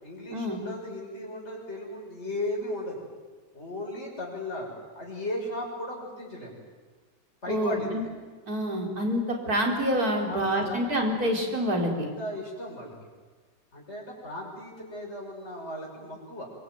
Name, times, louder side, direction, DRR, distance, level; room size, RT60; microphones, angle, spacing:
voice 1, 0.0-3.0 3.5-4.7 4.9-6.5 7.4-7.9 10.2-10.8 11.8-11.9 12.2-12.9 13.7-16.5, left 1 dB, 40° left, -2 dB, 6.8 m, -36 dB
voice 2, 7.5-8.0 8.5-12.1, equal, 55° right, 1 dB, 4.9 m, -27 dB
25.5 x 23.5 x 9.5 m, 1.4 s
omnidirectional pair, 1.9 m